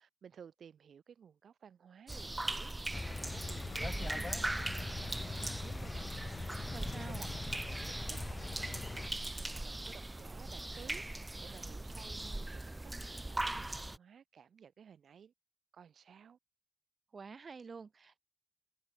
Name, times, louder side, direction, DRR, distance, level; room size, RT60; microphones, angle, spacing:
voice 1, 0.0-8.7 9.0-15.3 15.7-16.4, right 7 dB, 85° right, 5.0 m, -56 dB
sound 1, 2.1-14.0, right 2 dB, 15° right, 0.6 m, -40 dB
sound 2, 2.9-9.1, left 3 dB, 30° left, 1.4 m, -42 dB
voice 2, 6.7-7.2 17.1-18.2, right 5 dB, 45° right, 0.9 m, -48 dB
wide cardioid pair, 165°, 0 cm